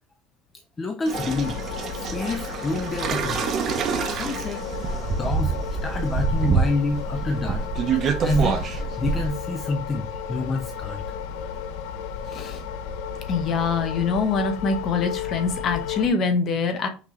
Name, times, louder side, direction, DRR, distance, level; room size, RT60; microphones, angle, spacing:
voice 1, 0.8-1.6 1.9-3.5 4.1-4.7 5.1-7.7 8.2-11.0 11.3-11.6, left 2 dB, 15° left, 0.4 m, -28 dB
sound 1, 1.1-16.1, left 7 dB, 70° left, 0.6 m, -33 dB
sound 2, 1.1-9.3, right 5 dB, 30° right, 0.6 m, -26 dB
voice 2, 13.3-16.9, left 4 dB, 35° left, 0.8 m, -24 dB
6.0 x 2.7 x 3.0 m
cardioid pair, 170°, 0 cm